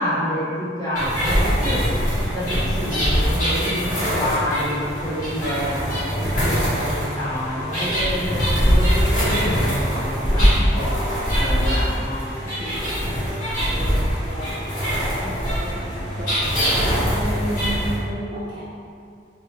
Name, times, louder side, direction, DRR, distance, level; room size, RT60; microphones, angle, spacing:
voice 1, 0.0-1.8 2.3-10.9 11.3-12.2, equal, 20° left, -11 dB, 1.0 m, -28 dB
sound 1, 1.0-18.0, equal, 45° left, 1.5 m, -22 dB
voice 2, 1.7-2.1 10.4-10.9 12.6-16.7 17.2-18.6, right 1 dB, 25° right, -9 dB, 0.5 m, -34 dB
3.8 x 2.3 x 2.7 m, 2.3 s
head